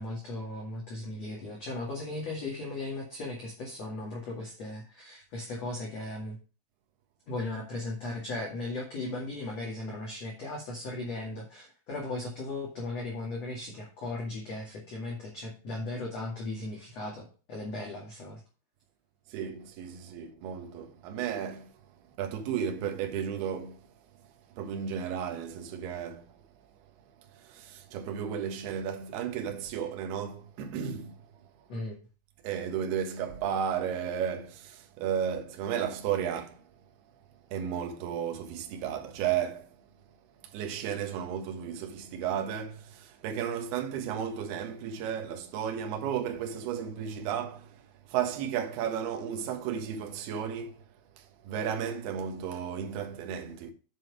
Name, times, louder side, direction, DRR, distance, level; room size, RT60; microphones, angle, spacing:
voice 1, 0.0-6.4 7.3-18.4 31.7-32.0, left 2 dB, 45° left, 2.6 m, -37 dB
voice 2, 19.3-21.7 22.2-23.8 24.6-26.3 27.3-31.2 32.4-36.6 37.5-39.7 40.5-47.8 48.1-50.8 51.2-53.7, right 8 dB, 65° right, 2.9 m, -33 dB
7.7 x 7.6 x 4.8 m
omnidirectional pair, 5.5 m